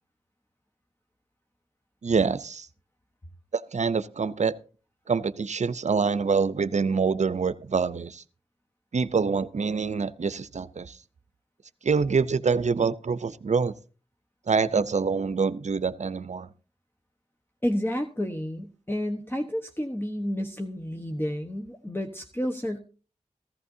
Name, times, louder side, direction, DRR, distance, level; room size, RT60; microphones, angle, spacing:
voice 1, 2.0-2.7 3.5-4.5 5.1-8.2 8.9-11.0 11.8-13.7 14.5-16.5, right 5 dB, 65° right, 15 dB, 0.6 m, -25 dB
voice 2, 17.6-22.8, equal, 15° left, 3 dB, 1.1 m, -30 dB
15.5 x 14.0 x 2.7 m, 0.36 s
cardioid pair, 45°, 13 cm